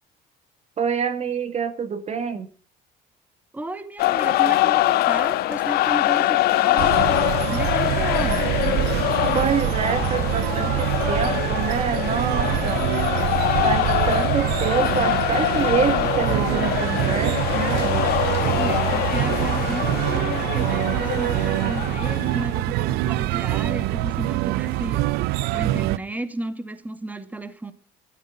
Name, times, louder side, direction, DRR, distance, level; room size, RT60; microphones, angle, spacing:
voice 1, 0.8-2.5 9.3-12.9 13.6-18.0 25.5-25.6, right 6 dB, 40° right, 12 dB, 2.2 m, -26 dB
voice 2, 3.5-7.0 7.5-8.5 18.6-27.7, right 1 dB, 10° right, 11 dB, 2.2 m, -33 dB
sound 1, 4.0-22.5, left 15 dB, 70° left, 1.4 m, -24 dB
sound 2, 6.8-26.0, right 17 dB, 80° right, 0.7 m, -25 dB
24.0 x 14.0 x 4.0 m, 0.38 s
cardioid pair, 110°, 16 cm